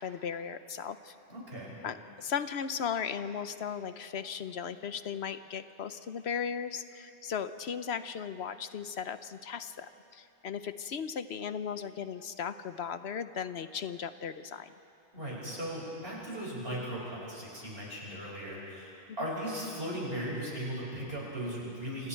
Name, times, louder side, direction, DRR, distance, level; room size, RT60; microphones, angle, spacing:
voice 1, 0.0-1.1 1.8-14.7 19.1-19.3, left 7 dB, 90° left, 11 dB, 1.1 m, -37 dB
voice 2, 1.3-1.8 15.1-22.1, equal, 70° right, -4 dB, 6.3 m, -37 dB
29.5 x 26.5 x 4.6 m, 2.7 s
omnidirectional pair, 1.0 m